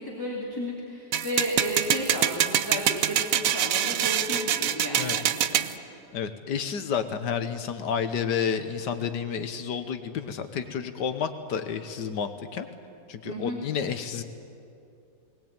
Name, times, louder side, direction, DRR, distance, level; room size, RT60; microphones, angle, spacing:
voice 1, 0.0-5.7 13.2-13.6, equal, 10° left, -4 dB, 2.8 m, -33 dB
sound 1, 1.1-5.7, right 10 dB, 65° right, 0.9 m, -25 dB
voice 2, 6.1-12.7 13.1-14.2, left 7 dB, 65° left, 9 dB, 1.7 m, -30 dB
20.0 x 19.5 x 9.0 m, 2.7 s
omnidirectional pair, 2.0 m